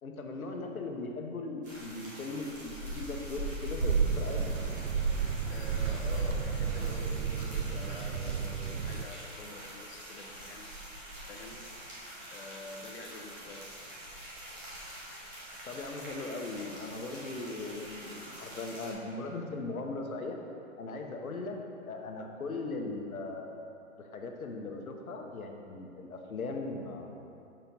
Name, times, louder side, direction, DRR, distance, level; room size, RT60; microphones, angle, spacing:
voice 1, 0.0-4.5 15.6-20.4 20.8-21.6 21.9-23.6 24.0-27.1, left 3 dB, 90° left, 2 dB, 1.1 m, -39 dB
sound 1, 1.6-18.9, equal, 15° right, 0.8 m, -43 dB
sound 2, 3.8-9.1, right 6 dB, 70° right, 0.5 m, -31 dB
voice 2, 5.5-10.7 11.3-11.6 12.3-13.7, left 2 dB, 45° left, 1 dB, 0.9 m, -47 dB
5.9 x 4.4 x 5.3 m, 2.7 s
hypercardioid pair, 160°, 42 cm